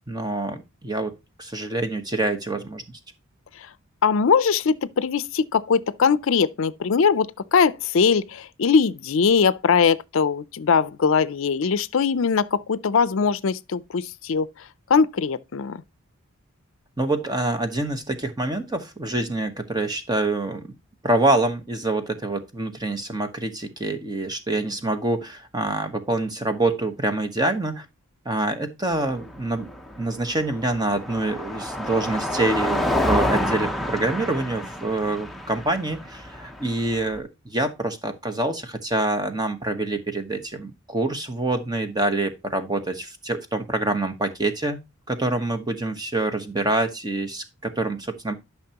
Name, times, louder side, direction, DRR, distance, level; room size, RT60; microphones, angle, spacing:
voice 1, 0.1-1.1 1.4-2.8 17.0-20.6 21.0-27.8 28.2-29.7 30.0-44.8 45.1-48.3, right 2 dB, 20° right, 1.1 m, -26 dB
voice 2, 4.0-15.8, left 5 dB, 65° left, 0.5 m, -21 dB
Car passing by, 28.9-37.2, left 1 dB, ahead, 0.7 m, -28 dB
12.0 x 5.9 x 2.9 m
head